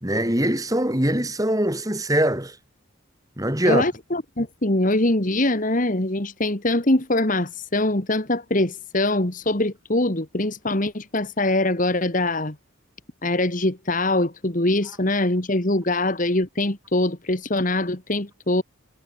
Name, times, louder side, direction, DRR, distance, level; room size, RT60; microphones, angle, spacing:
voice 1, 0.0-2.5 3.4-3.8, right 1 dB, 15° right, 3.1 m, -22 dB
voice 2, 3.7-12.6 13.2-18.6, left 2 dB, 40° left, 1.9 m, -23 dB
head